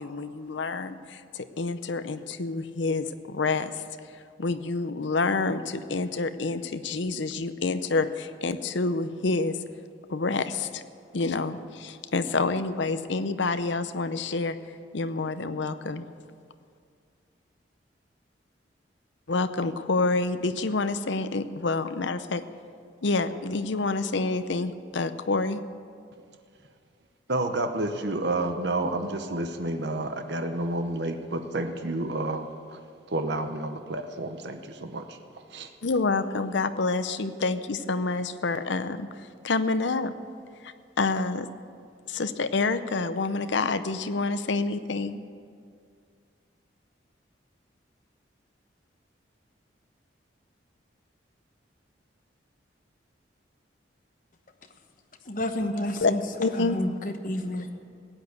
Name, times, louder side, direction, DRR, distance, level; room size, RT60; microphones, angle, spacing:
voice 1, 0.0-3.8 4.4-9.6 10.1-10.8 11.1-14.6 14.9-16.1 19.3-22.4 23.0-25.6 35.8-39.1 39.4-40.1 40.6-41.5 42.1-45.2 56.0-56.1 56.4-56.8, left 3 dB, 75° left, 11 dB, 0.7 m, -28 dB
voice 2, 27.3-32.8 33.1-35.2 35.5-35.7, right 2 dB, 65° right, 6 dB, 0.9 m, -30 dB
voice 3, 55.3-56.2 56.5-57.7, left 1 dB, 45° left, 5 dB, 1.1 m, -30 dB
16.0 x 9.2 x 8.1 m, 2.2 s
head